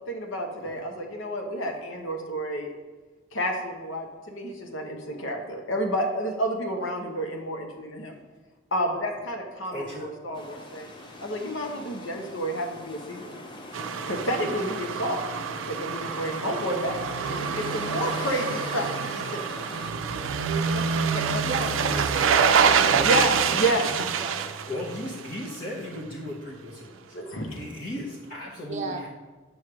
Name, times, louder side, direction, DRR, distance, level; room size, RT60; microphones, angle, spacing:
voice 1, 0.1-2.7 3.3-8.2 8.7-10.9 11.2-13.4 14.1-15.2 15.7-19.5 20.3-20.8 21.1-21.4 23.0-23.9 27.1-27.6, equal, 75° left, 3 dB, 1.0 m, -30 dB
voice 2, 9.7-10.1 11.0-11.2 23.9-24.0 24.6-27.2 27.5-29.1, left 1 dB, 45° left, -5 dB, 0.9 m, -36 dB
sound 1, 10.3-19.9, left 1 dB, 25° left, 0.6 m, -42 dB
sound 2, 13.7-25.6 25.9-26.0, right 6 dB, 80° right, 0.4 m, -26 dB
voice 3, 21.4-23.1 23.4-23.5 24.0-24.4 28.7-29.0, right 3 dB, 35° right, 5 dB, 0.6 m, -35 dB
8.0 x 3.1 x 6.1 m, 1.3 s
head